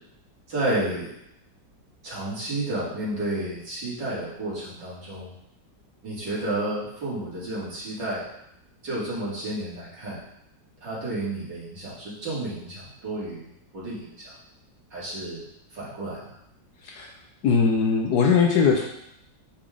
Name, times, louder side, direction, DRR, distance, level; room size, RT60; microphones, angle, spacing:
voice 1, 0.5-1.1 2.0-5.3 6.0-8.3 8.8-10.2 10.8-14.3 14.9-16.4, right 1 dB, 90° right, -8 dB, 3.0 m, -31 dB
voice 2, 17.4-18.9, left 5 dB, 70° left, 1 dB, 1.2 m, -20 dB
8.6 x 3.6 x 3.7 m, 0.78 s
omnidirectional pair, 1.9 m